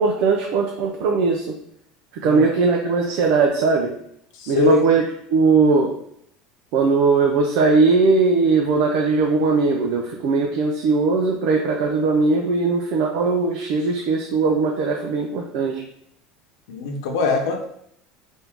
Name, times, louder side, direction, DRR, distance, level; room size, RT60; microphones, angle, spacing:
voice 1, 0.0-1.6 2.2-3.9 4.5-5.0 5.3-5.9 6.7-15.8, right 4 dB, 60° right, 1 dB, 0.5 m, -19 dB
voice 2, 4.4-4.8 16.7-17.6, left 3 dB, 85° left, 2 dB, 0.9 m, -21 dB
3.6 x 2.6 x 4.5 m, 0.70 s
cardioid pair, 165°, 2 cm